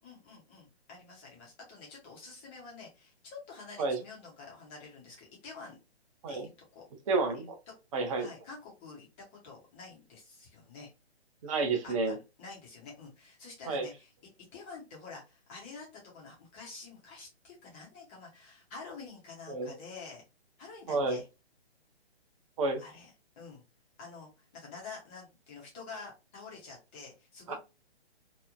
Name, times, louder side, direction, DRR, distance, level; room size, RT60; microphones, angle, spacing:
voice 1, 0.0-5.8 6.3-6.8 7.7-7.8 8.2-10.9 11.8-14.1 14.5-20.2 20.6-21.2 22.8-23.1 23.4-23.6 24.0-27.5, left 4 dB, 10° left, -3 dB, 0.5 m, -48 dB
voice 2, 7.1-7.5 7.9-8.3 11.4-12.1 13.7-13.9 19.5-19.8 20.9-21.2 22.6-22.8 27.5-27.6, right 3 dB, 30° right, 3 dB, 0.6 m, -30 dB
2.9 x 2.1 x 2.4 m, 0.27 s
hypercardioid pair, 150°, 34 cm